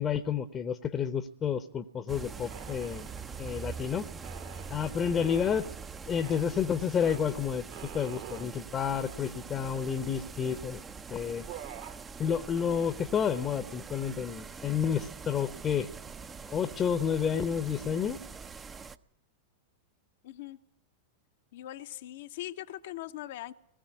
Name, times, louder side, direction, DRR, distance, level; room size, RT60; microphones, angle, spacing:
voice 1, 0.0-3.1 3.4-4.1 4.7-5.7 6.1-10.8 11.1-11.5 12.2-15.9 16.5-18.2, left 7 dB, 25° left, 1.0 m, -30 dB
sound 1, 2.1-19.0, right 5 dB, 20° right, 0.8 m, -44 dB
sound 2, 2.5-3.8 4.2-5.7 6.2-6.5 7.0-7.2 7.7-8.5 9.1-9.2 9.4-10.2 10.8-11.0 11.3-12.0, right 11 dB, 55° right, 1.8 m, -47 dB
voice 2, 20.2-20.6 21.5-23.5, left 14 dB, 55° left, 1.0 m, -41 dB
20.5 x 15.5 x 9.7 m
figure-of-eight pair, 90°, 0 cm